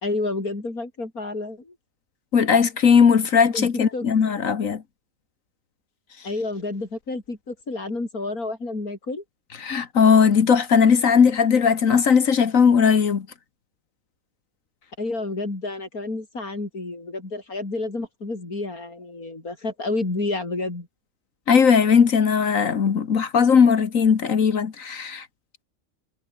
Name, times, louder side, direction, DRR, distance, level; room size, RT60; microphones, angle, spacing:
voice 1, 0.0-1.8 3.5-3.7 3.9-4.1 6.2-9.2 15.0-20.9, left 2 dB, 90° left, 5.5 m, -30 dB
voice 2, 2.3-4.8 9.6-13.3 21.5-25.2, left 6 dB, 65° left, 1.8 m, -18 dB
omnidirectional pair, 1.5 m